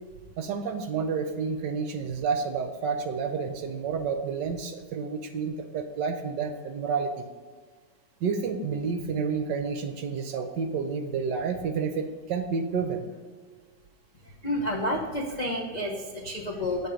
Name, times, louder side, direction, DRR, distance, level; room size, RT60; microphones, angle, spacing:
voice 1, 0.4-7.3 8.2-13.1, right 5 dB, 70° right, 6 dB, 1.2 m, -30 dB
voice 2, 14.4-16.9, left 1 dB, 65° left, -2 dB, 0.4 m, -30 dB
8.2 x 4.6 x 5.0 m, 1.5 s
omnidirectional pair, 2.2 m